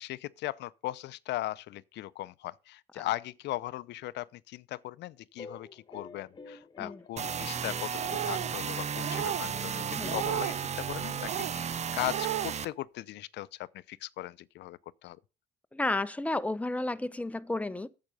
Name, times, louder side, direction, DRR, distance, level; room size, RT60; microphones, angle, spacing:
voice 1, 0.0-15.2, left 15 dB, 70° left, 0.6 m, -38 dB
sound 1, 5.4-11.9, left 4 dB, 25° left, 1.6 m, -50 dB
sound 2, 7.2-12.7, right 7 dB, 40° right, 0.8 m, -34 dB
sound 3, 8.0-8.5 9.0-9.5 10.0-10.6 11.2-11.5 12.0-12.5, right 14 dB, 75° right, 0.8 m, -34 dB
voice 2, 15.7-17.9, left 2 dB, 10° left, 0.8 m, -32 dB
9.0 x 7.7 x 5.4 m
cardioid pair, 90°, 18 cm